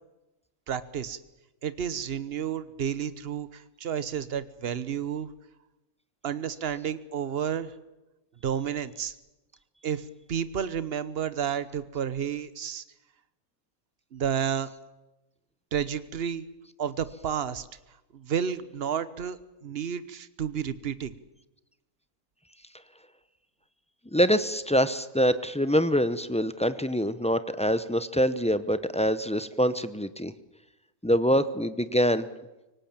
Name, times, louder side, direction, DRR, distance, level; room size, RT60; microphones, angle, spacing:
voice 1, 0.7-1.2 1.6-5.3 6.2-7.7 8.4-9.1 9.8-12.8 14.1-14.7 15.7-16.5 16.8-17.7 18.1-21.2, right 8 dB, 45° right, 15 dB, 1.1 m, -31 dB
voice 2, 24.1-30.3 31.0-32.3, equal, 10° left, 12 dB, 0.3 m, -25 dB
24.0 x 19.0 x 8.8 m, 1.0 s
omnidirectional pair, 1.6 m